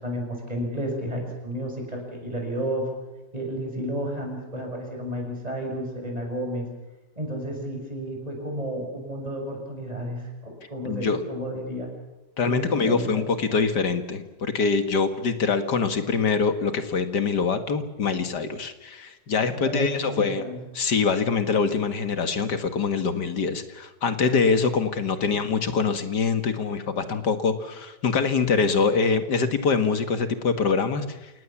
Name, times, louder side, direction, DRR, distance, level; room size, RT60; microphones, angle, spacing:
voice 1, 0.0-2.9 3.3-6.7 7.2-11.9 12.4-13.3 19.6-20.6, equal, 20° right, 2 dB, 6.8 m, -32 dB
voice 2, 10.8-11.2 12.4-20.4 20.7-31.3, left 5 dB, 70° left, 8 dB, 2.4 m, -24 dB
28.0 x 18.5 x 7.3 m, 1.0 s
omnidirectional pair, 1.9 m